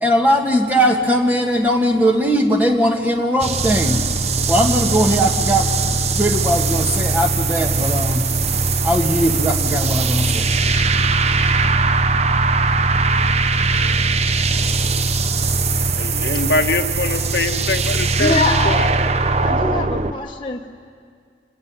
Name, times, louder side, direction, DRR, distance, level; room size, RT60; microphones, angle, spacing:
voice 1, 0.0-4.1 4.5-8.3 8.8-10.5, equal, 10° right, 2 dB, 1.7 m, -19 dB
sound 1, 3.4-20.1, right 3 dB, 35° right, 0.8 m, -19 dB
voice 2, 16.0-18.3 18.6-18.9, left 2 dB, 65° left, 4 dB, 1.4 m, -22 dB
voice 3, 18.2-18.8 19.4-20.7, left 3 dB, 25° left, -1 dB, 1.4 m, -23 dB
27.0 x 19.0 x 9.7 m, 2.1 s
head